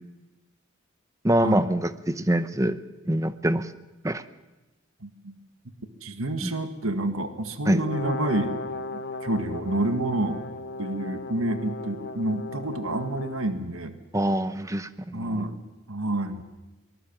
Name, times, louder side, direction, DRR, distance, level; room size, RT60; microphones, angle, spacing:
voice 1, 1.2-2.8 3.1-3.7 4.0-4.2 6.4-6.6 7.7-7.8 14.1-15.5, right 1 dB, 15° right, 12 dB, 0.8 m, -25 dB
voice 2, 5.0-5.3 6.0-8.6 8.9-10.4 10.8-13.9 15.1-15.6 15.9-16.4, right 1 dB, 90° right, 8 dB, 1.8 m, -28 dB
Brass instrument, 7.7-13.6, left 2 dB, 50° left, 1.0 m, -36 dB
23.5 x 20.0 x 7.4 m, 1.1 s
head